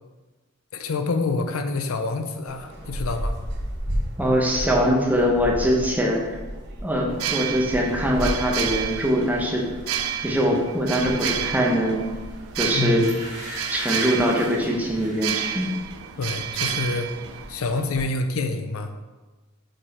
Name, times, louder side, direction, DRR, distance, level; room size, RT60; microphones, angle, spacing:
voice 1, 0.7-3.3 12.7-13.2 16.2-17.1 17.5-18.9, left 3 dB, 75° left, 7 dB, 0.5 m, -27 dB
sound 1, 2.5-18.0, equal, 50° right, 0.9 m, -35 dB
voice 2, 4.2-6.4 6.8-9.6 10.2-12.1 12.6-13.1 13.7-15.7, equal, 5° right, -1 dB, 0.7 m, -22 dB
sound 2, 7.1-17.9, right 9 dB, 75° right, 0.4 m, -31 dB
sound 3, 12.3-12.5 13.0-15.3 15.8-16.0 16.3-17.0 17.3-17.4, right 1 dB, 35° right, 1.6 m, -38 dB
5.1 x 4.3 x 4.2 m, 1.2 s
head